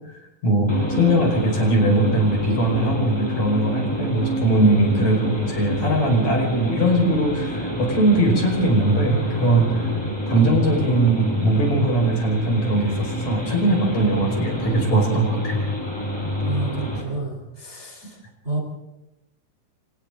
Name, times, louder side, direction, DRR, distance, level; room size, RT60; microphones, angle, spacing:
voice 1, 0.4-9.9 10.3-15.6, right 1 dB, 50° left, 1 dB, 6.6 m, -20 dB
sound 1, 0.7-17.0, equal, 5° left, 5.2 m, -28 dB
voice 2, 16.4-18.2 18.4-18.6, right 2 dB, 20° right, 0 dB, 3.8 m, -29 dB
28.5 x 27.5 x 3.9 m, 0.91 s
omnidirectional pair, 4.2 m